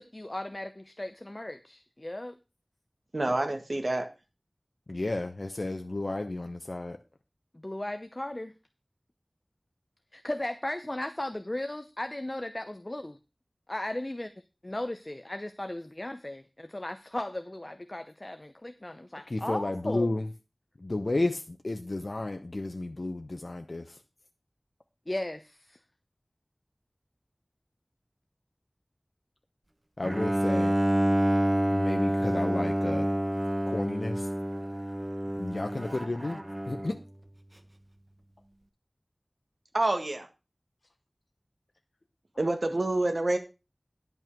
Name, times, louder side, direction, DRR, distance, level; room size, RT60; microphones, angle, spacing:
voice 1, 0.0-2.4 7.5-8.5 10.1-13.2 13.7-14.3 14.6-20.1 25.1-25.8, left 1 dB, 35° left, 10 dB, 0.7 m, -36 dB
voice 2, 3.1-4.0 39.7-40.3 42.4-43.4, right 2 dB, 70° right, 5 dB, 1.7 m, -27 dB
voice 3, 4.9-7.0 19.3-20.2 20.8-23.8 30.0-30.7 31.7-33.1 33.7-34.3 35.4-36.4 36.7-37.0, left 2 dB, 70° left, 5 dB, 0.9 m, -32 dB
Bowed string instrument, 30.0-37.0, right 1 dB, 25° right, 1.1 m, -28 dB
11.0 x 5.5 x 6.0 m, 0.29 s
wide cardioid pair, 45°, 0 cm